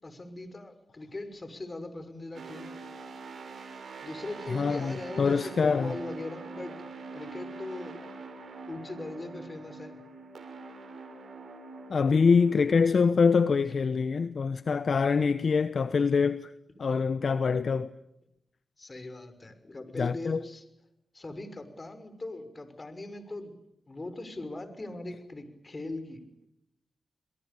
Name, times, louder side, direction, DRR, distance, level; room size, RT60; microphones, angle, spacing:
voice 1, 0.0-2.8 4.0-6.7 7.1-8.0 8.7-10.0 18.8-20.6 21.1-23.6 23.9-26.2, left 2 dB, 35° left, 6.1 m, -40 dB
sound 1, 2.3-12.9, right 3 dB, 70° right, 6.1 m, -44 dB
voice 2, 4.5-5.9 11.9-16.5 16.8-17.9 20.0-20.4, left 5 dB, 60° left, 1.1 m, -25 dB
29.5 x 23.0 x 7.0 m
cardioid pair, 60°, 0 cm